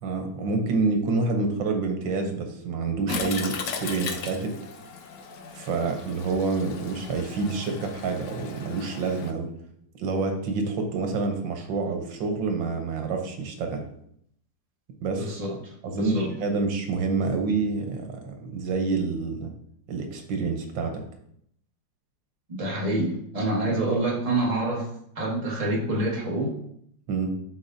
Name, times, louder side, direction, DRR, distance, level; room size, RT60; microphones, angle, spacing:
voice 1, 0.0-4.5 5.5-9.5 9.9-13.8 15.0-15.3 15.8-19.5 19.9-21.0 27.1-27.3, right 4 dB, 85° right, 4 dB, 1.7 m, -27 dB
Toilet flush, 3.1-9.3, left 5 dB, 70° left, 1.4 m, -37 dB
voice 2, 15.2-16.3 22.6-24.9 25.1-26.5, right 1 dB, 20° right, -3 dB, 1.4 m, -27 dB
12.0 x 4.7 x 2.6 m, 0.71 s
omnidirectional pair, 2.0 m